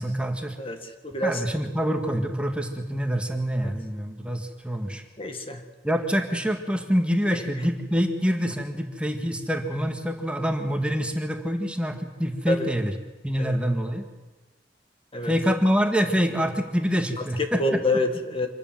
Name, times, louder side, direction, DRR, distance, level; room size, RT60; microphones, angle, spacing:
voice 1, 0.0-0.6 1.2-5.0 5.8-12.9 13.2-14.1 15.2-17.6, equal, 5° right, 4 dB, 1.8 m, -26 dB
voice 2, 0.6-1.4 5.2-5.6 7.3-7.5 12.5-12.7 13.4-13.6 15.1-15.3 17.2-18.5, left 2 dB, 35° left, 6 dB, 1.8 m, -27 dB
26.0 x 13.5 x 9.2 m, 1.2 s
head